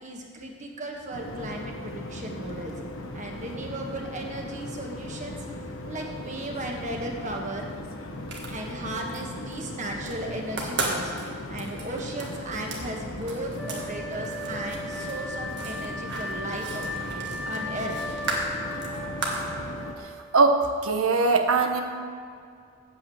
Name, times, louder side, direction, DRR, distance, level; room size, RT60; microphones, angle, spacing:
voice 1, 0.0-2.7 3.1-5.4 5.8-7.7 8.5-11.1 11.5-18.2, right 1 dB, 35° right, 1 dB, 1.4 m, -36 dB
sound 1, 1.1-19.9, left 1 dB, 70° left, 1.0 m, -38 dB
sound 2, 8.1-9.2 9.5-10.1 10.5-13.8 14.1-19.5, right 2 dB, 55° right, 1.8 m, -35 dB
Wind instrument woodwind instrument, 13.6-20.6, equal, ahead, 0.6 m, -37 dB
voice 2, 20.3-21.8, right 3 dB, 85° right, 5 dB, 1.0 m, -21 dB
8.6 x 8.2 x 7.7 m, 2.3 s
head